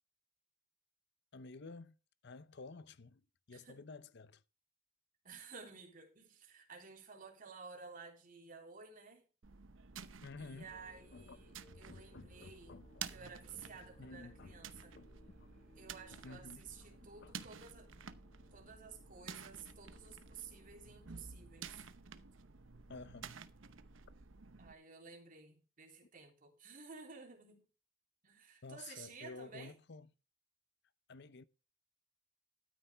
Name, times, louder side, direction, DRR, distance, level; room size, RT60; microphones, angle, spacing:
voice 1, 1.3-2.0 2.2-4.4 10.2-10.7 11.1-11.4 11.7-13.1 13.5-13.6 14.0-15.5 16.1-17.3 22.9-23.3 28.6-30.1 31.1-31.4, left 3 dB, 60° left, 0.7 m, -52 dB
voice 2, 3.5-3.8 5.2-9.2 10.4-12.8 13.1-14.9 15.8-17.9 18.5-21.8 24.6-27.6 28.2-29.7, right 5 dB, 45° right, 3.3 m, -53 dB
sound 1, 9.4-24.7, right 6 dB, 75° right, 0.9 m, -52 dB
Musical instrument, 10.6-22.2, left 1 dB, 35° left, 3.5 m, -65 dB
13.0 x 9.4 x 3.4 m
head